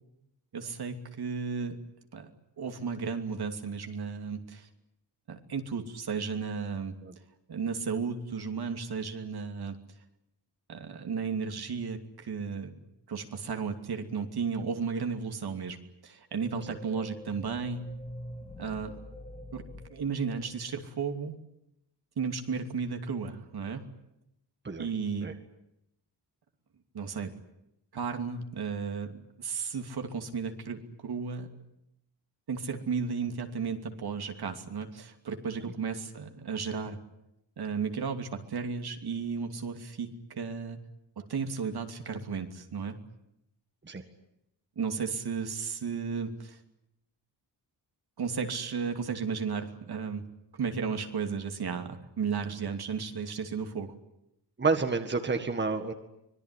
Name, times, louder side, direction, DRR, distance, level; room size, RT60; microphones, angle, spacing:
voice 1, 0.5-1.8 2.1-2.3 2.6-4.7 5.3-6.9 7.5-9.8 10.7-15.8 16.0-17.8 18.6-19.0 19.5-19.6 19.9-21.3 22.2-23.8 24.8-25.3 26.9-27.3 27.9-31.5 32.5-37.0 37.6-40.8 41.2-43.0 44.8-46.6 48.2-50.2 50.5-53.9, right 5 dB, 65° right, 6 dB, 2.8 m, -34 dB
sound 1, 16.3-20.9, equal, 20° left, 3.5 m, -45 dB
voice 2, 54.6-55.9, right 4 dB, 25° right, 7 dB, 1.8 m, -29 dB
25.5 x 21.0 x 10.0 m, 0.83 s
wide cardioid pair, 150°, 41 cm